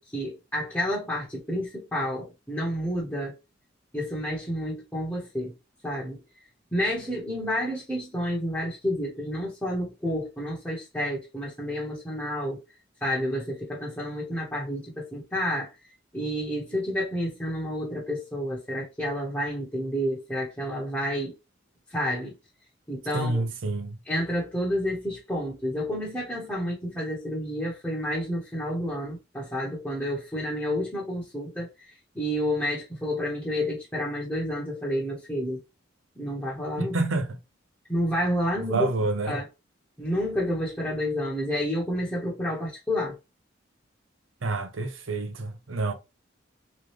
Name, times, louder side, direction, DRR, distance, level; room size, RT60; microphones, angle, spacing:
voice 1, 0.0-3.3 3.9-5.5 5.8-6.2 6.7-12.6 13.0-15.7 16.1-21.3 21.9-22.3 22.9-23.4 24.1-35.6 36.2-36.9 37.9-39.4 40.0-43.2, equal, 10° left, 1.1 m, -30 dB
voice 2, 23.1-24.0 36.8-37.4 38.5-39.4 44.4-45.9, right 2 dB, 80° right, 0.7 m, -28 dB
3.7 x 3.1 x 3.2 m
head